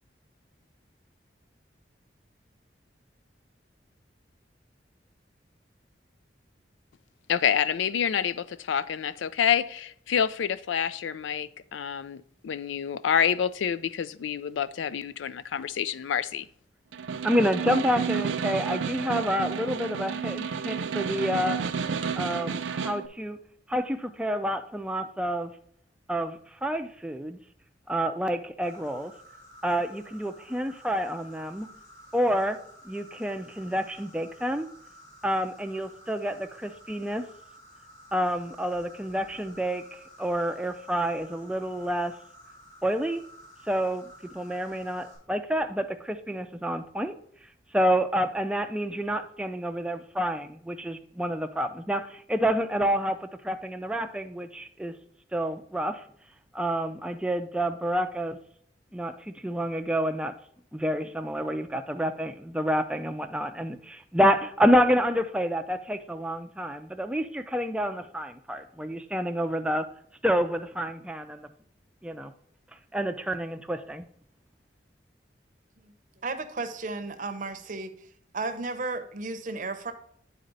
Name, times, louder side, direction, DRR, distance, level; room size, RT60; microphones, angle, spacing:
voice 1, 7.3-16.5, left 8 dB, 90° left, 0.4 m, -28 dB
Snare drum, 16.9-23.1, right 6 dB, 90° right, 0.5 m, -31 dB
voice 2, 17.2-21.6 22.1-23.4 23.7-25.5 26.1-27.4 27.9-29.1 29.6-31.7 32.1-32.6 32.8-34.7 35.2-37.3 38.1-42.1 42.8-43.2 43.7-47.1 47.7-54.9 55.3-56.0 56.5-58.4 58.9-60.3 60.7-69.9 70.2-71.5 72.0-72.3 72.9-74.0, equal, 5° right, 0.4 m, -28 dB
Insect, 28.6-45.2, equal, 40° left, 3.4 m, -52 dB
voice 3, 76.2-77.9 78.3-79.9, right 3 dB, 45° right, 0.7 m, -33 dB
9.0 x 4.1 x 4.0 m
head